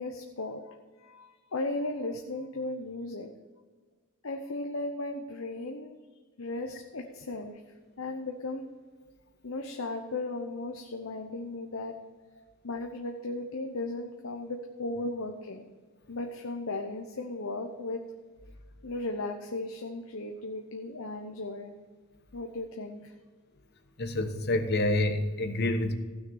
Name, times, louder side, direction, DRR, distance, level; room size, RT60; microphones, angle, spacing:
voice 1, 0.0-3.3 4.2-6.0 6.4-7.6 8.0-8.7 9.4-11.9 12.6-15.7 16.1-18.0 18.8-21.7 22.3-23.1, left 2 dB, 75° left, 3 dB, 0.9 m, -36 dB
voice 2, 24.0-25.9, left 1 dB, 50° left, 7 dB, 1.1 m, -27 dB
15.5 x 6.5 x 6.4 m, 1.4 s
head